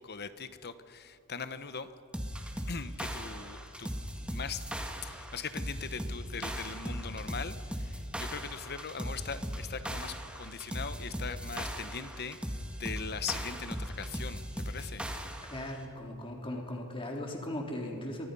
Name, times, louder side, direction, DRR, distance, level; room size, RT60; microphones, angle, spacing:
voice 1, 0.0-1.9 2.7-3.9 4.2-4.6 5.0-15.1, left 5 dB, 45° left, 11 dB, 1.1 m, -40 dB
sound 1, 2.1-15.7, equal, 5° right, 2.1 m, -38 dB
voice 2, 15.5-18.3, left 1 dB, 25° left, 0 dB, 3.6 m, -38 dB
30.0 x 24.5 x 5.5 m, 2.6 s
head